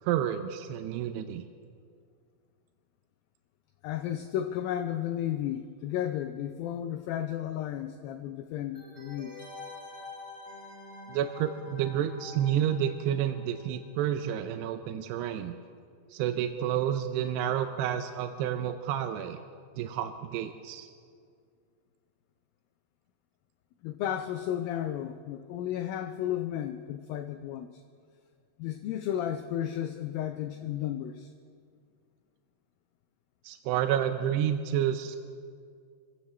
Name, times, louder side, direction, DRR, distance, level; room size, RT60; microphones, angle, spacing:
voice 1, 0.0-1.5 11.1-15.5 16.1-19.4 19.8-20.9 33.4-35.2, right 10 dB, 80° right, 7 dB, 2.7 m, -30 dB
voice 2, 3.8-9.4 23.8-27.8 28.6-31.3, left 11 dB, 90° left, 7 dB, 2.0 m, -33 dB
sound 1, 8.7-14.2 14.5-14.6, left 3 dB, 60° left, 0.7 m, -47 dB
28.0 x 15.5 x 3.2 m, 2.2 s
omnidirectional pair, 4.9 m